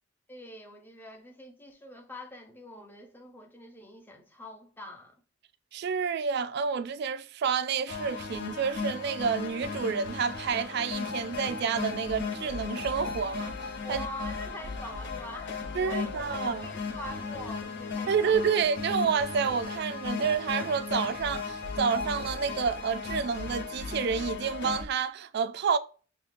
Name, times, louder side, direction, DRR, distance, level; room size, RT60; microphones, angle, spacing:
voice 1, 0.3-5.2 13.8-18.4, equal, 10° left, 0.6 m, -44 dB
voice 2, 5.7-14.0 15.7-16.7 18.1-25.8, right 6 dB, 55° right, 0.3 m, -29 dB
sound 1, 7.9-24.8, left 4 dB, 60° left, 0.8 m, -36 dB
5.7 x 2.1 x 2.5 m
head